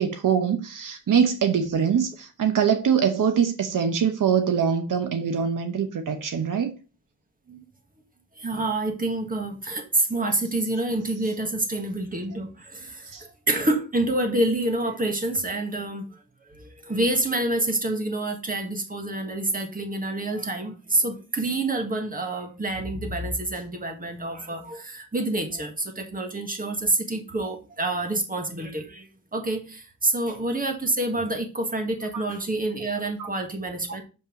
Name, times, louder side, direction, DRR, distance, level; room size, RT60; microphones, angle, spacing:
voice 1, 0.0-6.7 13.1-13.2 32.1-32.2 33.2-33.3, right 7 dB, 80° right, 0.9 m, -23 dB
voice 2, 8.4-16.1 16.5-34.0, right 2 dB, 25° right, 1.7 m, -27 dB
6.9 x 5.5 x 3.9 m
wide cardioid pair, 110°, 32 cm